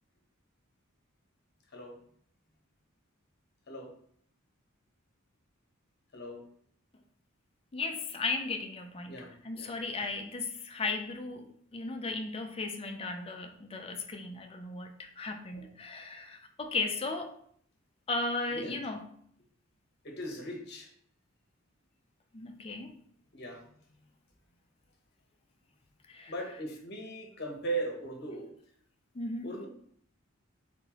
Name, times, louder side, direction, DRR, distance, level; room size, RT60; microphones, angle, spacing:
voice 1, 6.1-6.4 9.1-9.7 15.5-15.7 18.5-18.8 20.0-20.9 23.3-23.8 26.3-28.5 29.4-29.7, right 2 dB, 50° left, 1 dB, 1.0 m, -39 dB
voice 2, 7.7-17.3 18.1-19.1 22.3-22.9 26.1-26.3 29.1-29.5, left 3 dB, 30° left, 4 dB, 0.5 m, -36 dB
4.3 x 3.9 x 2.9 m, 0.64 s
head